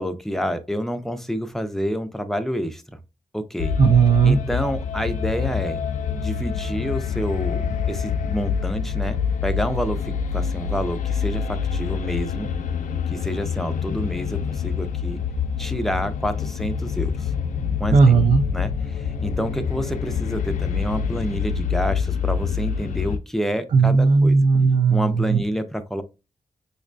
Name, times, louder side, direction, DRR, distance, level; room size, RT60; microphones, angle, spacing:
voice 1, 0.0-2.8 3.3-3.7 4.2-5.8 6.1-7.6 7.9-12.5 13.1-15.2 15.6-17.3 17.8-18.0 18.5-24.4 24.9-26.0, equal, ahead, 0.3 m, -28 dB
sound 1, 3.6-23.2, left 6 dB, 85° left, 0.4 m, -26 dB
voice 2, 3.8-4.4 17.9-18.4 23.7-25.4, right 5 dB, 70° right, 0.5 m, -16 dB
5.1 x 2.1 x 2.4 m
wide cardioid pair, 145°, 13 cm